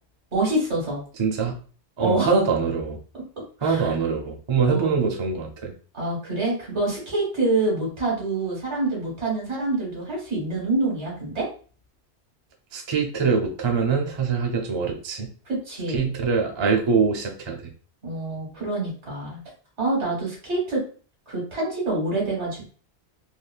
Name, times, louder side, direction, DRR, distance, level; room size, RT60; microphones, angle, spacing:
voice 1, 0.3-1.0 2.0-2.3 3.6-3.9 4.7-5.0 5.9-11.5 15.5-16.1 18.0-19.4 19.8-20.8 21.3-22.7, right 2 dB, 90° right, -2 dB, 1.7 m, -26 dB
voice 2, 1.2-1.5 2.0-3.0 3.6-5.7 12.7-15.3 15.9-17.6, right 5 dB, 35° right, 1 dB, 0.5 m, -23 dB
3.4 x 2.3 x 2.3 m, 0.39 s
omnidirectional pair, 1.1 m